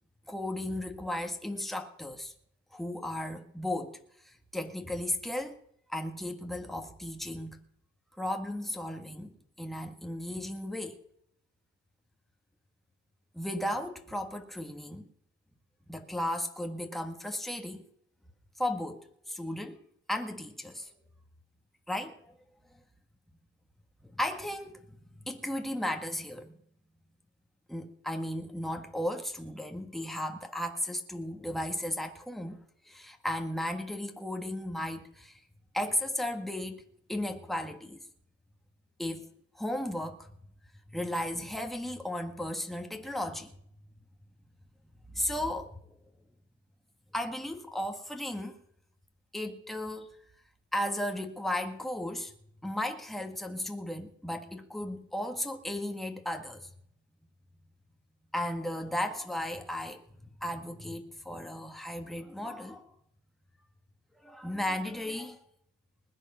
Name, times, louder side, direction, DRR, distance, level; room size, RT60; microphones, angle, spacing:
voice 1, 0.3-2.3 2.7-5.6 5.9-7.6 8.2-11.0 13.3-15.1 15.9-17.8 18.6-19.8 20.1-20.9 21.9-22.4 24.0-26.6 27.7-35.4 35.7-38.0 39.0-40.3 40.9-43.5 45.1-45.8 47.1-48.6 49.3-50.2 50.7-52.3 52.6-56.7 58.3-60.0 60.4-62.9 64.2-65.4, left 1 dB, ahead, 1.7 m, -35 dB
20.5 x 8.5 x 5.8 m
cardioid pair, 90°, 30 cm